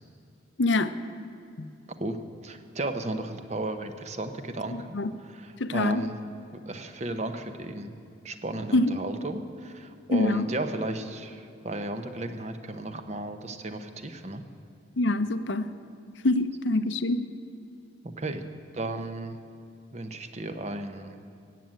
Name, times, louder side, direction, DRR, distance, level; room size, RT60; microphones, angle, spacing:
voice 1, 0.6-0.9 1.6-1.7 4.9-5.1 5.6-6.0 8.7-8.9 10.1-10.5 15.0-15.7 16.2-17.2, left 2 dB, 90° left, 11 dB, 0.7 m, -24 dB
voice 2, 2.4-6.2 6.5-8.0 8.2-14.4 18.0-18.4 18.7-19.4 19.9-21.2, right 2 dB, 40° right, 8 dB, 0.9 m, -34 dB
17.0 x 7.7 x 8.9 m, 2.6 s
head